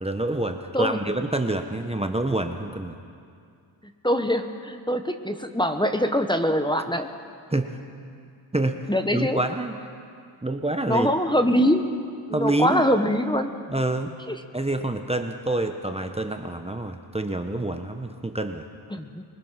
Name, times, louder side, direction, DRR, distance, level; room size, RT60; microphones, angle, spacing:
voice 1, 0.0-3.0 7.5-7.8 8.5-8.8 9.1-9.8 10.4-11.1 12.3-12.8 13.7-14.2 14.5-18.7, right 2 dB, 10° right, 5 dB, 1.2 m, -27 dB
voice 2, 4.0-7.1 8.9-9.4 10.9-11.9 12.3-13.5 14.3-14.4 18.9-19.2, equal, 10° left, 7 dB, 1.3 m, -23 dB
23.0 x 20.5 x 5.9 m, 2.3 s
cardioid pair, 55°, 50 cm